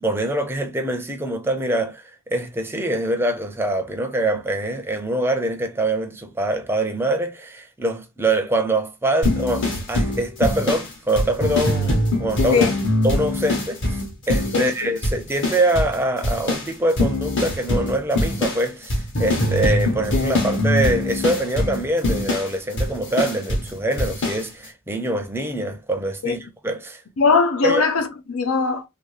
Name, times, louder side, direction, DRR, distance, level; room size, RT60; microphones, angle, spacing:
voice 1, 0.0-12.7 13.0-14.0 14.3-27.0 27.6-27.8, right 1 dB, 10° right, 0.5 m, -24 dB
sound 1, 9.2-14.8 15.0-16.0 16.2-23.7 24.0-24.4, left 1 dB, 55° left, 1.2 m, -23 dB
voice 2, 14.5-15.0 26.2-26.3 27.2-28.8, left 4 dB, 90° left, 0.6 m, -20 dB
2.9 x 2.6 x 3.1 m
head